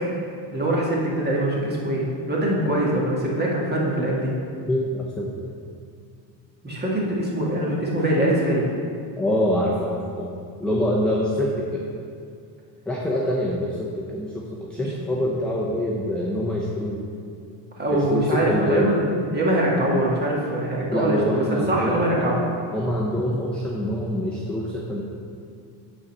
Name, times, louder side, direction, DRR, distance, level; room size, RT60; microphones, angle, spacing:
voice 1, 0.5-4.3 6.6-8.7 14.8-14.9 17.8-22.4, right 1 dB, 20° right, -4 dB, 2.0 m, -23 dB
voice 2, 4.7-5.4 9.2-10.3 10.6-11.8 12.9-17.0 17.9-19.0 20.9-22.2 22.7-25.0, left 1 dB, ahead, -4 dB, 0.8 m, -25 dB
9.2 x 4.2 x 6.6 m, 2.3 s
cardioid pair, 120°, 47 cm